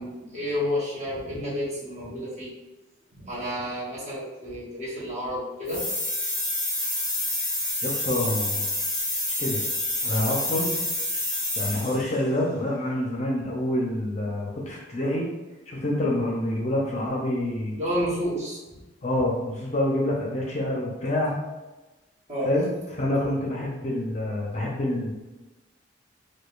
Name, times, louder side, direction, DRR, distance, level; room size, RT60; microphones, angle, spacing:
voice 1, 0.0-2.5 3.1-5.8 17.7-18.6 22.3-22.5, equal, 35° right, -8 dB, 1.1 m, -30 dB
sound 1, 5.7-12.1, left 1 dB, 5° left, 0.7 m, -28 dB
voice 2, 7.8-8.7 9.4-9.6 10.0-10.8 11.6-15.3 15.7-17.8 19.0-21.4 22.4-25.1, left 1 dB, 35° left, -3 dB, 0.5 m, -27 dB
4.8 x 2.2 x 2.4 m, 1.1 s
head